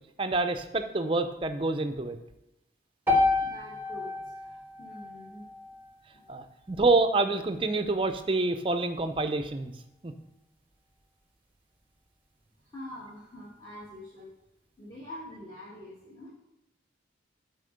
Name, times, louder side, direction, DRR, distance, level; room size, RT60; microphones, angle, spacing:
voice 1, 0.2-2.2 6.3-9.7 10.0-10.1, right 3 dB, 30° right, 7 dB, 0.5 m, -27 dB
sound 1, 3.1-7.2, left 3 dB, 10° right, 1.0 m, -30 dB
voice 2, 3.4-5.7 6.1-6.3 12.6-14.3 14.8-16.3, left 1 dB, 20° left, -8 dB, 1.5 m, -45 dB
8.1 x 4.2 x 5.1 m, 0.91 s
head